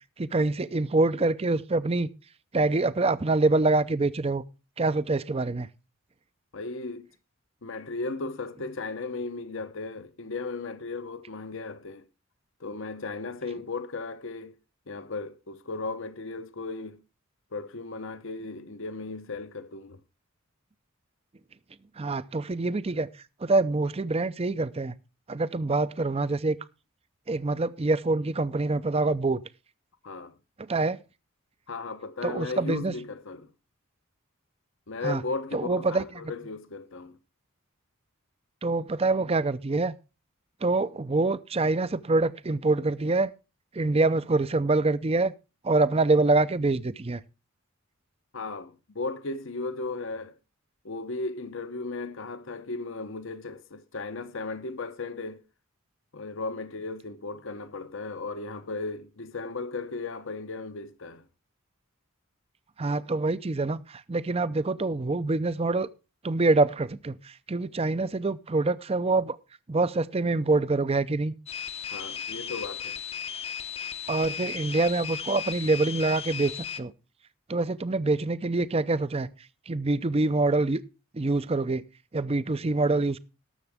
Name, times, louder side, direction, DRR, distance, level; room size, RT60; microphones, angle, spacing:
voice 1, 0.2-2.1 2.5-4.4 4.8-5.7 22.0-23.1 23.4-25.0 25.3-26.6 27.3-29.4 30.6-31.0 32.2-32.9 35.0-35.2 35.5-36.0 38.6-39.9 40.6-43.3 43.7-45.3 45.6-47.2 62.8-65.9 66.2-69.4 69.7-71.3 74.1-76.9 77.5-79.3 79.7-80.8 81.1-81.8 82.1-83.2, right 3 dB, 25° right, 0.5 m, -25 dB
voice 2, 6.5-7.1 7.6-12.1 12.6-14.6 14.9-17.0 17.5-20.0 30.0-30.3 31.7-33.5 34.9-37.2 48.3-50.3 50.8-55.4 56.1-61.2 71.9-73.0, left 3 dB, 60° left, 0.9 m, -36 dB
sound 1, 71.5-76.8, left 8 dB, 30° left, 0.7 m, -36 dB
19.0 x 7.0 x 3.5 m
head